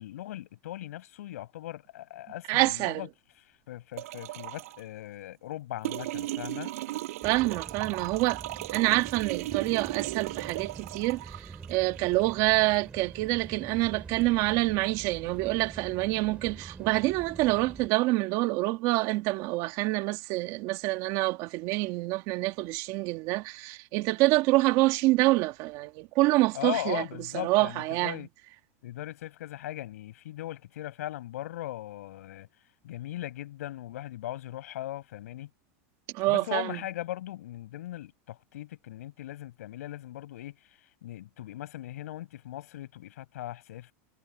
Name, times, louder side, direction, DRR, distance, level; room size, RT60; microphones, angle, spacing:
voice 1, 0.0-3.1 3.7-6.7 26.5-28.3 28.8-32.5 32.8-35.5 36.3-40.6 41.0-43.9, left 14 dB, 90° left, 6.5 m, -39 dB
voice 2, 2.5-3.0 7.2-8.4 8.7-27.0 27.4-28.2 36.1-36.8, right 20 dB, 50° right, 1.8 m, -26 dB
sound 1, 4.0-4.8 5.8-12.8 14.2-14.3, right 16 dB, 75° right, 6.7 m, -37 dB
sound 2, 7.2-17.9, right 4 dB, 15° right, 5.8 m, -46 dB
supercardioid pair, 150°, 8 cm